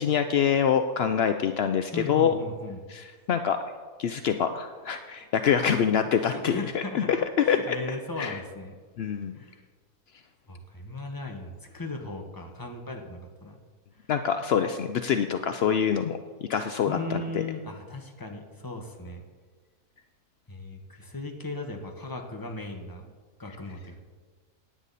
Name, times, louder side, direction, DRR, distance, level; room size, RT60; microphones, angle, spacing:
voice 1, 0.0-2.3 2.9-3.6 4.0-7.2 7.5-7.8 8.2-8.4 9.0-9.3 14.1-16.2 16.5-17.2, left 8 dB, 75° left, 8 dB, 0.5 m, -25 dB
voice 2, 1.9-2.8 5.7-8.7 9.3-9.6 10.5-13.6 16.9-19.2 20.5-23.1 23.4-24.0, left 2 dB, 15° left, 2 dB, 1.1 m, -37 dB
16.5 x 9.7 x 4.1 m, 1.5 s
omnidirectional pair, 1.7 m